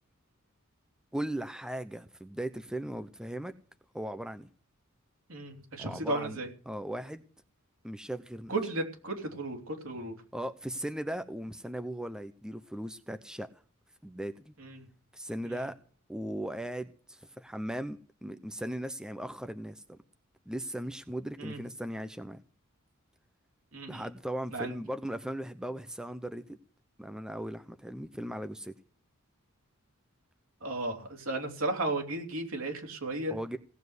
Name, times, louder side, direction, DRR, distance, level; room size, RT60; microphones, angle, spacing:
voice 1, 1.1-3.5 3.9-4.5 5.8-6.4 6.7-7.2 7.8-8.5 10.3-13.5 14.0-14.5 15.1-15.8 16.1-20.0 20.5-22.4 23.9-26.6 27.0-28.7 33.3-33.6, right 1 dB, 5° right, 0.6 m, -38 dB
voice 2, 5.3-6.5 8.5-10.1 14.6-14.8 15.4-15.6 21.4-21.6 23.7-24.0 24.5-24.7 30.6-33.3, right 2 dB, 70° right, 3.1 m, -34 dB
17.5 x 7.3 x 8.1 m
head